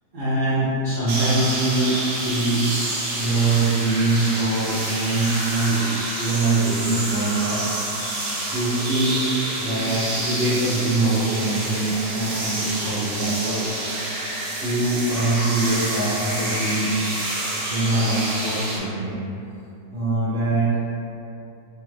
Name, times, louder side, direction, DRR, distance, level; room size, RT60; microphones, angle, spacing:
voice 1, 0.1-2.0 2.3-2.6 3.2-5.9 6.2-7.6 8.5-9.2 9.6-13.7 14.5-17.0 17.7-19.2 19.9-20.7, right 2 dB, 45° right, -14 dB, 0.7 m, -23 dB
sound 1, 1.1-18.8, right 1 dB, 80° right, 1.1 m, -28 dB
2.8 x 2.4 x 3.1 m, 2.7 s
omnidirectional pair, 1.6 m